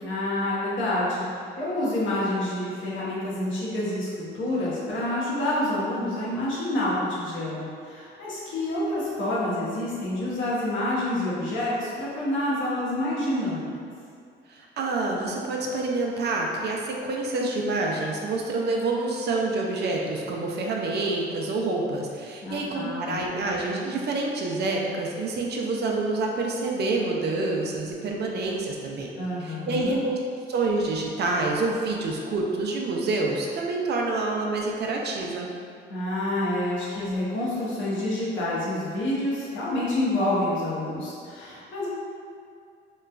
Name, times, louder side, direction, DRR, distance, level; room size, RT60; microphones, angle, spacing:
voice 1, 0.0-1.3 1.6-13.7 22.4-23.2 29.2-30.0 35.9-41.9, left 1 dB, 75° left, -7 dB, 0.9 m, -28 dB
voice 2, 14.5-29.1 29.4-30.2 30.5-35.5, right 2 dB, 55° right, -1 dB, 0.4 m, -27 dB
3.0 x 2.2 x 2.3 m, 2.3 s
cardioid pair, 90°, 20 cm